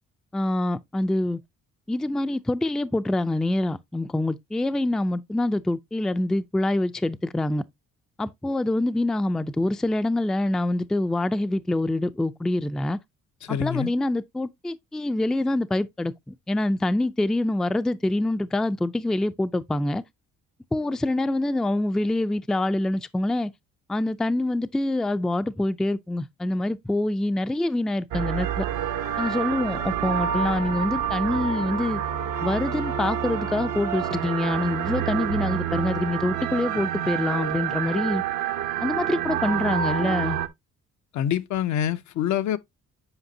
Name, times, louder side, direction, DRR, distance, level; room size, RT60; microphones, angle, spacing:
voice 1, 0.3-1.4 1.9-7.6 8.2-13.0 13.5-20.0 20.7-23.5 23.9-28.7 29.2-32.0 32.4-38.2 38.8-40.4, left 1 dB, ahead, 0.3 m, -25 dB
voice 2, 13.5-13.9 41.1-42.6, left 10 dB, 70° left, 0.6 m, -25 dB
sound 1, 28.1-40.5, right 9 dB, 80° right, 0.9 m, -28 dB
8.0 x 5.1 x 2.7 m
cardioid pair, 90°, 30 cm